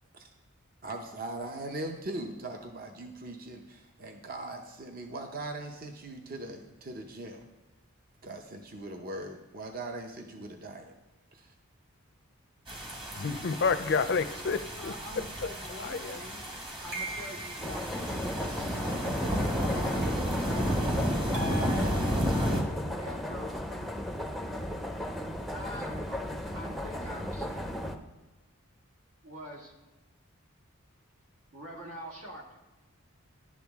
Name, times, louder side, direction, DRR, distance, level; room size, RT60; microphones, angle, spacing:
voice 1, 0.8-7.5 8.2-10.9 11.3-11.5, right 2 dB, 40° right, 0.6 m, -40 dB
sound 1, 12.7-22.6, equal, 25° right, 1.0 m, -32 dB
voice 2, 13.2-15.2 15.8-16.2, left 5 dB, 50° left, 0.4 m, -30 dB
voice 3, 14.8-16.4 16.8-18.8 19.5-20.5 21.2-22.6 22.9-23.6 25.4-27.8 29.2-29.7 31.5-32.4, equal, 80° right, 2.0 m, -45 dB
sound 2, 16.9-17.8 21.3-22.6, right 2 dB, 60° right, 1.7 m, -39 dB
sound 3, 17.6-28.0, left 1 dB, ahead, 0.5 m, -36 dB
11.0 x 8.2 x 3.5 m
head